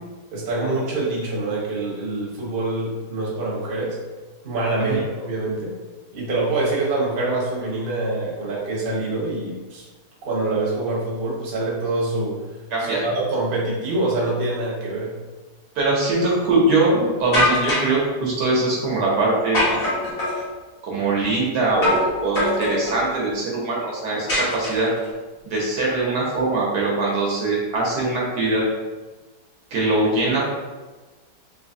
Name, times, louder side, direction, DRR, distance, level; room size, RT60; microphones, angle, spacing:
voice 1, 0.3-4.0 4.4-5.7 6.1-9.8 10.2-12.4 13.0-15.1, right 2 dB, 40° right, -5 dB, 0.9 m, -25 dB
voice 2, 12.7-13.0 15.7-19.8 20.8-24.9 25.4-28.6 29.7-30.4, right 2 dB, 70° right, -3 dB, 1.3 m, -22 dB
sound 1, 17.3-18.0 19.5-20.4 21.8-22.1 22.3-23.0 24.3-25.0, left 1 dB, 55° left, 1.8 m, -22 dB
4.0 x 3.0 x 2.6 m, 1.3 s
omnidirectional pair, 1.9 m